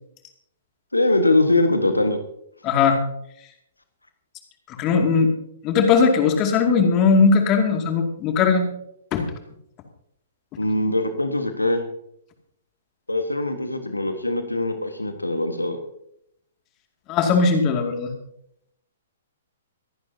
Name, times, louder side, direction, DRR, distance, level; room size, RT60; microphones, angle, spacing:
voice 1, 0.9-2.2 10.6-11.9 13.1-15.8, left 2 dB, 85° left, 7 dB, 1.5 m, -22 dB
voice 2, 2.6-3.0 4.7-5.3 5.6-8.7 9.1-9.2 17.1-18.1, left 5 dB, 30° left, 4 dB, 2.4 m, -19 dB
25.0 x 11.0 x 2.8 m, 0.73 s
figure-of-eight pair, 115°, 0 cm